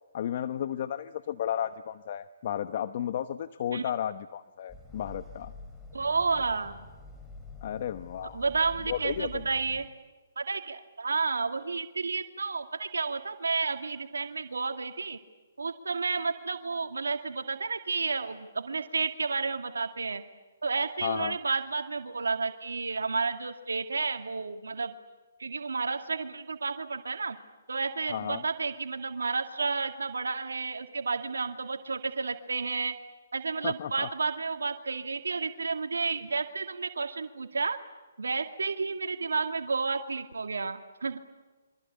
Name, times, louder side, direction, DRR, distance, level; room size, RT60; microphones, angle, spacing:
voice 1, 0.1-5.5 7.6-8.4 8.9-9.4 21.0-21.4 28.1-28.4 33.6-34.1, left 10 dB, 45° left, 12 dB, 1.0 m, -33 dB
sound 1, 4.7-9.9, left 3 dB, 5° left, 3.2 m, -47 dB
voice 2, 5.9-6.8 8.3-9.9 10.4-15.2 15.6-20.2 20.6-24.9 25.4-27.4 27.7-33.0 33.3-37.8 38.2-41.2, right 4 dB, 90° right, 6 dB, 2.2 m, -31 dB
28.5 x 25.0 x 8.4 m, 1.3 s
hypercardioid pair, 150°, 0 cm